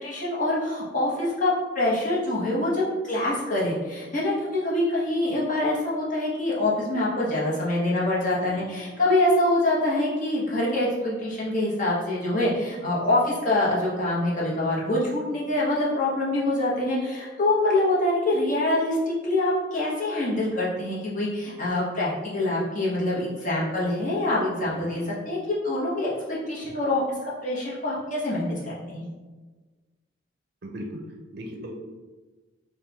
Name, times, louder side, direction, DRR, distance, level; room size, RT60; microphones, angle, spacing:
voice 1, 0.0-27.0 27.4-29.1, left 1 dB, 40° left, -6 dB, 1.0 m, -25 dB
voice 2, 24.6-25.0 30.6-31.0 31.3-31.7, equal, 55° right, 1 dB, 0.5 m, -38 dB
4.3 x 2.3 x 3.4 m, 1.3 s
head